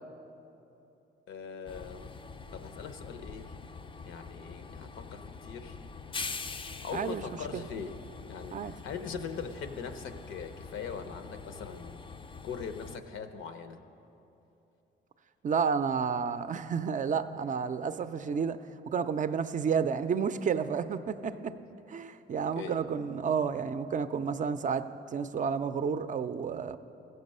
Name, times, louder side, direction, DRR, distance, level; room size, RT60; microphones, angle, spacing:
voice 1, 1.3-2.1 2.5-3.6 4.0-5.8 6.8-8.0 8.3-12.0 12.4-13.8 21.4-21.6 22.6-22.8, left 6 dB, 80° left, 9 dB, 0.7 m, -41 dB
Train, 1.7-13.0, left 4 dB, 25° left, 0.4 m, -44 dB
voice 2, 6.9-7.2 7.5-7.6 8.5-8.7 15.4-18.6 18.9-21.5 21.9-26.8, right 6 dB, 40° right, 11 dB, 0.4 m, -31 dB
15.5 x 6.7 x 5.4 m, 2.9 s
cardioid pair, 90°, 20 cm